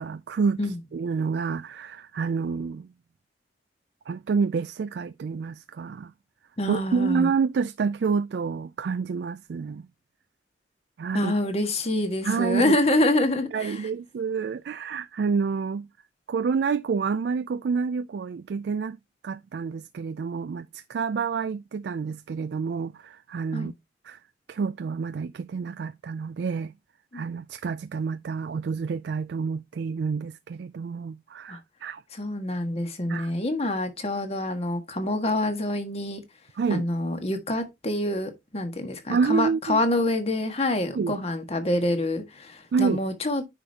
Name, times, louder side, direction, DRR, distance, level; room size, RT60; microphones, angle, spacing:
voice 1, 0.0-0.6 0.9-2.9 4.1-6.1 6.7-9.8 11.0-11.3 12.2-12.8 13.5-15.9 16.3-19.0 19.2-23.7 24.1-24.2 24.5-26.7 27.1-32.0 33.1-33.3 36.6-36.9 39.1-39.8 41.0-41.2 42.7-43.0, right 5 dB, 65° right, 0.3 m, -28 dB
voice 2, 6.6-7.3 11.1-13.9 23.5-23.7 27.1-27.2 31.5-31.6 32.1-36.2 36.7-43.4, left 1 dB, 35° left, 1.6 m, -26 dB
9.9 x 5.1 x 2.8 m
head